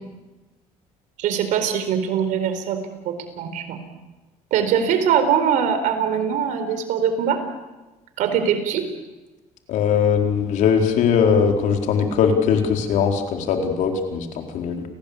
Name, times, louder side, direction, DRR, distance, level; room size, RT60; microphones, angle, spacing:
voice 1, 1.2-3.8 4.5-7.4 8.2-8.9, right 8 dB, 80° right, 8 dB, 4.4 m, -22 dB
voice 2, 9.7-14.8, left 6 dB, 75° left, 4 dB, 4.3 m, -20 dB
29.5 x 19.0 x 8.6 m, 1.1 s
cardioid pair, 105°, 13 cm